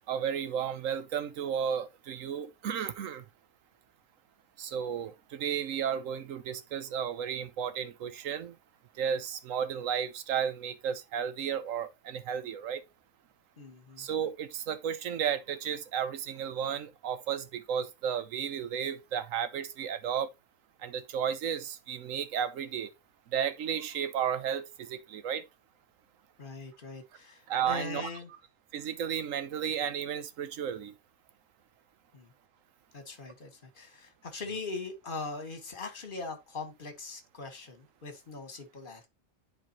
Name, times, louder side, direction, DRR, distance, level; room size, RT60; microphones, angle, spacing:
voice 1, 0.1-3.2 4.6-8.5 9.0-12.8 14.0-20.3 20.8-22.9 23.3-25.4 27.5-28.1 28.7-30.9, right 8 dB, 75° right, 1.1 m, -33 dB
voice 2, 13.6-14.1 26.4-28.3 32.1-32.3 32.9-39.1, left 3 dB, 40° left, 1.5 m, -41 dB
9.9 x 4.1 x 2.9 m
omnidirectional pair, 1.4 m